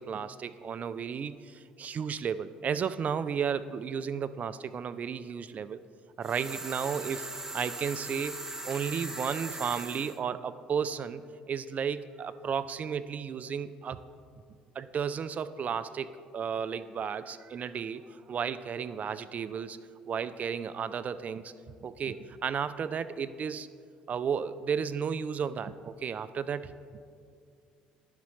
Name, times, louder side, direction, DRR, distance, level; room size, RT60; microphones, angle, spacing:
voice 1, 0.0-5.8 6.2-7.3 7.5-11.2 11.5-14.0 14.8-19.8 20.1-21.5 21.8-23.7 24.1-26.7, right 7 dB, 45° right, 14 dB, 0.3 m, -33 dB
sound 1, 6.2-10.2, right 2 dB, 15° right, 0.7 m, -40 dB
11.5 x 4.1 x 3.1 m, 2.3 s
hypercardioid pair, 60°, 4 cm